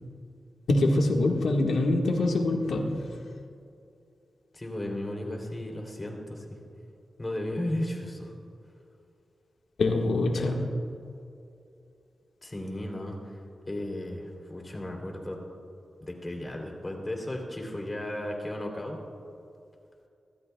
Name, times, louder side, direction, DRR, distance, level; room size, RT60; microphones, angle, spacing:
voice 1, 0.7-3.1 9.8-10.7, left 2 dB, 85° left, 1 dB, 1.5 m, -24 dB
voice 2, 4.5-6.4 7.2-8.3 10.3-10.5 12.4-13.4 13.7-15.4 16.0-19.0, left 1 dB, 25° left, 1 dB, 3.1 m, -35 dB
25.5 x 13.0 x 2.3 m, 2.5 s
cardioid pair, 70°, 0 cm